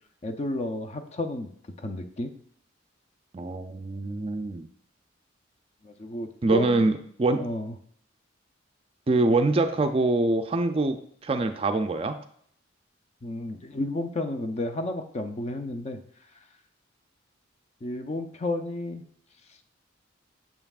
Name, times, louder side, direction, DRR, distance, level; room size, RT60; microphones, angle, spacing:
voice 1, 0.2-1.5 1.8-2.3 5.8-6.9 7.4-7.7 13.2-16.0 17.8-19.0, left 1 dB, 35° left, 7 dB, 0.5 m, -32 dB
voice 2, 3.3-4.7 6.4-6.9 7.2-7.4 9.1-11.0 11.2-12.2, right 2 dB, 30° right, 8 dB, 0.4 m, -24 dB
7.1 x 5.6 x 2.4 m, 0.62 s
head